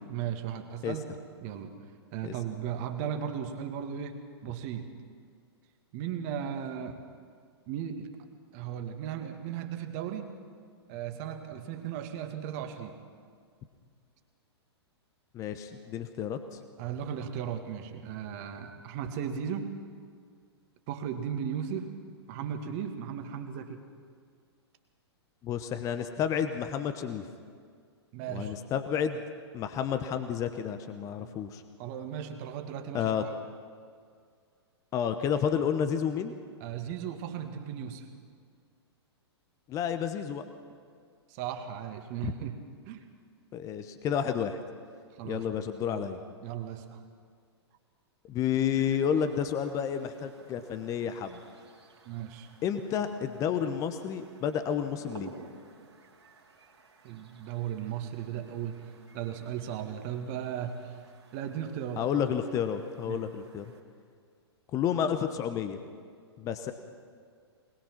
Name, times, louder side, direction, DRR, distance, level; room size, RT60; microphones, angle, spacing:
voice 1, 0.1-1.1 1.4-1.7 2.1-4.9 5.9-7.0 7.7-8.1 8.5-10.3 10.9-13.0 16.8-19.7 20.9-21.9 22.3-23.8 28.1-28.5 31.2-31.3 31.8-33.3 36.6-38.1 41.3-42.6 42.9-43.0 45.1-45.5 45.9-46.0 46.4-47.0 52.1-52.5 57.0-60.9 61.3-62.0 63.1-63.3, right 9 dB, 35° right, 6 dB, 1.9 m, -36 dB
voice 2, 15.3-16.6 25.4-27.3 28.3-29.2 29.5-31.6 32.9-33.2 34.9-36.3 39.7-40.4 42.2-42.3 43.5-44.6 45.2-46.2 48.3-51.4 52.6-55.3 62.0-63.7 64.7-65.8 66.4-66.7, left 8 dB, 25° left, 9 dB, 1.0 m, -30 dB
sound 1, 48.7-63.8, right 3 dB, 70° right, 3.1 m, -54 dB
22.0 x 21.0 x 6.0 m, 2.1 s
figure-of-eight pair, 105°, 14 cm